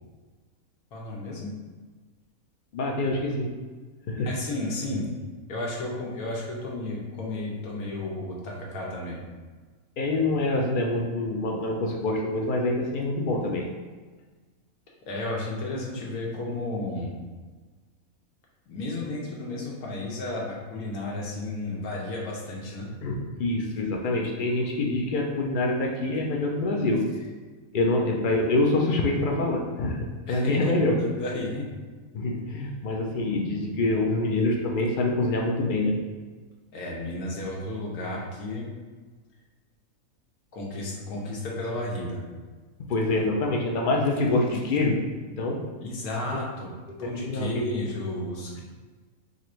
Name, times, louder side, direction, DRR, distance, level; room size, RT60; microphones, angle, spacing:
voice 1, 0.9-1.5 4.2-5.1 5.5-9.2 15.1-17.1 18.7-22.9 30.3-30.7 31.0-31.7 36.7-38.7 40.5-42.2 45.8-46.7 47.0-48.6, left 2 dB, 90° left, -3 dB, 1.4 m, -33 dB
voice 2, 2.7-3.5 4.1-4.3 10.0-13.7 23.0-27.1 27.7-31.0 32.1-36.0 42.9-45.6 47.0-47.8, left 2 dB, 65° left, 0 dB, 0.5 m, -26 dB
3.9 x 2.5 x 4.3 m, 1.4 s
omnidirectional pair, 1.5 m